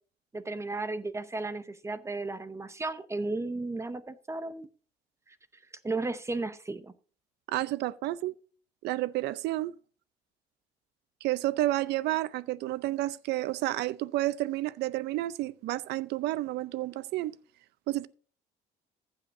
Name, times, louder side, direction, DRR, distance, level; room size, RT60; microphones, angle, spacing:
voice 1, 0.3-4.7 5.3-5.4 5.8-6.9, right 3 dB, 15° right, 0.7 m, -34 dB
voice 2, 7.5-8.3 8.8-9.7 11.2-17.3 17.9-18.1, right 16 dB, 80° right, 0.6 m, -30 dB
15.0 x 8.0 x 2.6 m
cardioid pair, 110°, 17 cm